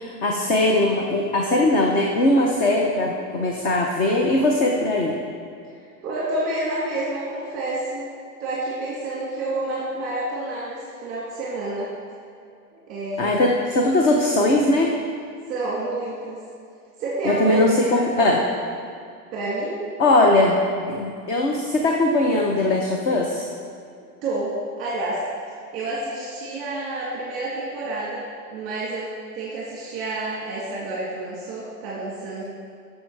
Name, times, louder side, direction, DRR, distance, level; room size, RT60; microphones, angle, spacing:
voice 1, 0.0-5.2 13.2-15.0 17.2-18.4 20.0-20.6 20.9-23.5, left 2 dB, 20° left, 0 dB, 0.5 m, -20 dB
voice 2, 5.6-8.1 8.4-11.9 12.7-13.5 15.5-16.4 17.0-17.6 17.9-18.4 19.3-19.9 24.2-25.3 25.7-29.1 29.3-32.4, right 2 dB, 30° right, -6 dB, 2.1 m, -29 dB
12.0 x 6.5 x 4.6 m, 2.4 s
supercardioid pair, 145°, 49 cm